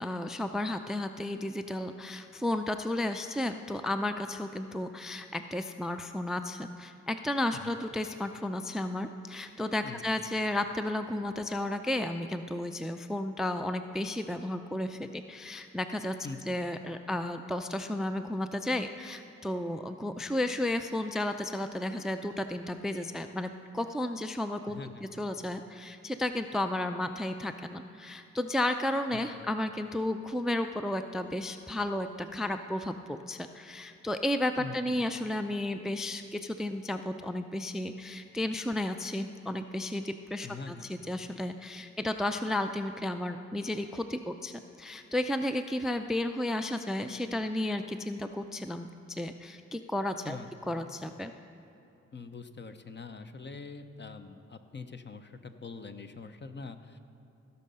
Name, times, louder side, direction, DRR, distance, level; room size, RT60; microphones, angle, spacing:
voice 1, 0.0-16.2 16.5-50.4 50.7-51.3, left 1 dB, ahead, 8 dB, 0.4 m, -33 dB
voice 2, 16.2-16.6 24.6-25.0 29.1-29.2 34.6-35.0 40.4-40.9 50.2-50.9 52.1-57.0, left 4 dB, 40° left, 8 dB, 0.7 m, -44 dB
16.5 x 5.5 x 5.5 m, 2.8 s
cardioid pair, 60°, 29 cm